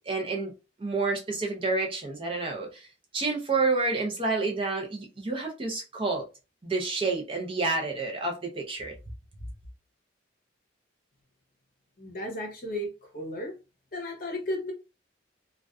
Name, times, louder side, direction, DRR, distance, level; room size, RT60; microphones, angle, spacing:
voice 1, 0.1-0.5 0.8-2.9 3.1-6.2 6.6-8.9, right 3 dB, 30° right, 0.5 m, -29 dB
voice 2, 12.0-13.5 13.9-14.7, left 1 dB, 45° left, 0.8 m, -34 dB
2.4 x 2.2 x 2.3 m
head